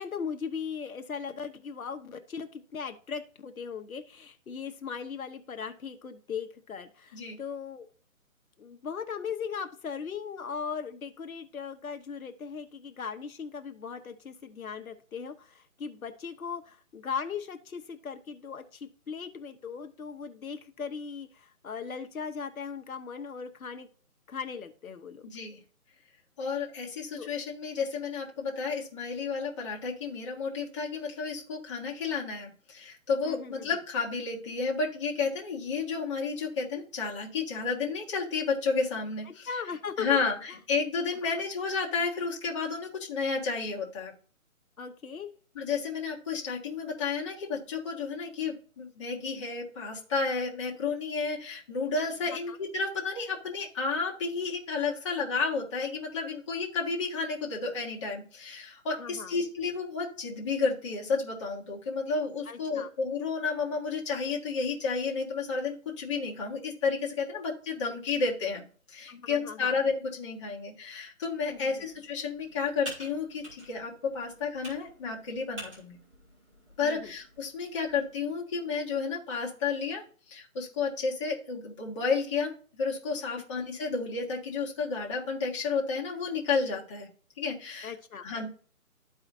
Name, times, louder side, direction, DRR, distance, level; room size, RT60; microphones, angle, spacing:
voice 1, 0.0-7.9 8.6-23.9 24.3-25.3 27.1-27.3 33.2-33.8 39.3-40.2 40.5-40.6 44.8-45.3 52.5-52.6 59.0-59.3 62.5-62.9 69.1-69.7 71.5-71.9 76.8-77.1 83.6-83.7 87.8-88.2, left 6 dB, 70° left, 6 dB, 1.0 m, -38 dB
voice 2, 25.2-25.6 26.4-39.5 40.0-44.1 45.5-76.0 76.8-80.0 80.3-82.5 82.8-87.1 87.4-87.9 88.2-88.5, left 4 dB, 20° left, -3 dB, 1.3 m, -31 dB
Computer keyboard, 71.4-78.2, equal, 10° right, 2.1 m, -48 dB
13.0 x 4.8 x 2.6 m, 0.41 s
hypercardioid pair, 160°, 43 cm